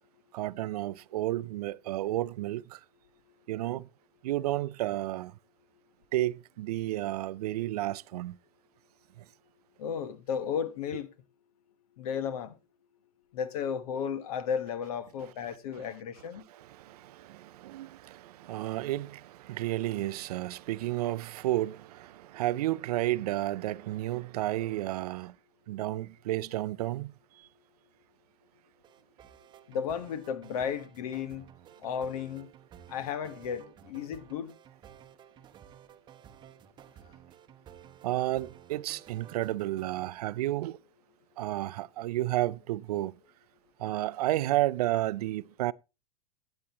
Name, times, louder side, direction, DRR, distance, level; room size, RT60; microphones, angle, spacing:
voice 1, 0.3-2.8 3.5-3.9 4.2-5.3 6.1-8.4 15.8-15.9 16.5-25.3 25.7-27.1 38.0-40.8 41.4-43.1 43.8-45.7, right 15 dB, 75° right, 0.4 m, -32 dB
voice 2, 9.8-11.1 12.0-12.5 13.3-16.4 29.7-31.4 31.8-32.5 32.9-34.5, left 7 dB, 70° left, 1.3 m, -34 dB
sound 1, 28.8-40.1, right 9 dB, 25° right, 0.8 m, -53 dB
12.5 x 8.9 x 2.9 m
supercardioid pair, 140°, 20 cm